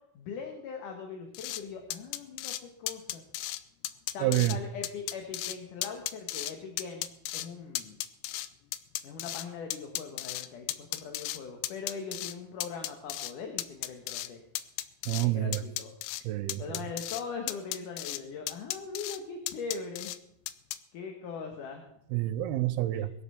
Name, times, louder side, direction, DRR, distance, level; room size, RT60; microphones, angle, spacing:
voice 1, 0.1-3.2 4.1-7.1 7.3-8.0 9.0-14.4 15.2-16.0 16.6-20.1 20.9-21.9 22.9-23.1, left 5 dB, 60° left, 2.7 m, -41 dB
sound 1, 1.3-1.6 1.9-2.6 2.9-3.6 3.8-4.6 4.8-5.6 5.8-6.5 6.8-7.5 7.7-9.5 9.7-11.4 11.6-12.3 12.6-13.3 13.6-14.3 14.6-15.3 15.5-16.2 16.5-17.2 17.5-18.2 18.5-19.2 19.5-20.2 20.5-20.8, left 14 dB, 85° left, 2.7 m, -35 dB
voice 2, 4.2-4.6 15.1-15.6 16.2-16.8 22.1-23.1, right 15 dB, 80° right, 2.7 m, -28 dB
22.0 x 8.2 x 6.9 m
omnidirectional pair, 4.6 m